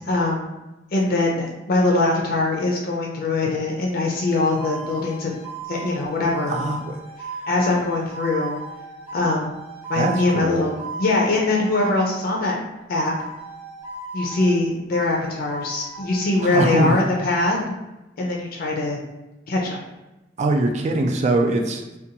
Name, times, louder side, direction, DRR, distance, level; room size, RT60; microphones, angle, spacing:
voice 1, 0.1-0.5 0.9-6.6 7.5-8.6 9.1-9.6 9.9-10.7 11.0-12.6 12.9-13.1 14.1-17.7 18.2-19.0 19.5-19.8, left 2 dB, 55° left, -1 dB, 0.4 m, -22 dB
sound 1, 4.2-12.5 12.9-14.6 14.9-17.5, right 3 dB, 10° right, 0.7 m, -36 dB
voice 2, 6.5-7.0 10.0-10.7 16.4-17.0 20.4-21.9, right 2 dB, 40° right, 3 dB, 0.3 m, -22 dB
2.5 x 2.2 x 2.8 m, 1.0 s
head